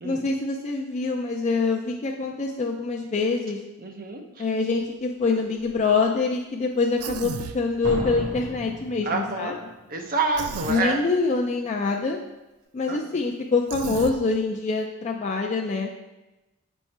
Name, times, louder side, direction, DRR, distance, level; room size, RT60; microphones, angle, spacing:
voice 1, 0.0-3.6 4.4-9.7 10.7-12.2 12.7-15.9, left 4 dB, 30° left, 0 dB, 0.4 m, -25 dB
voice 2, 3.8-4.2 9.1-9.5 9.9-11.0 12.9-13.0, right 3 dB, 40° right, 3 dB, 0.7 m, -27 dB
Slam, 4.7-4.8 5.4-5.8 7.8-9.7 10.0-10.1, right 1 dB, 65° right, 1.6 m, -35 dB
Human voice, 7.0-7.6 10.3-10.8 13.7-14.2, right 6 dB, 90° right, 0.4 m, -33 dB
7.3 x 4.3 x 3.3 m, 1.0 s
head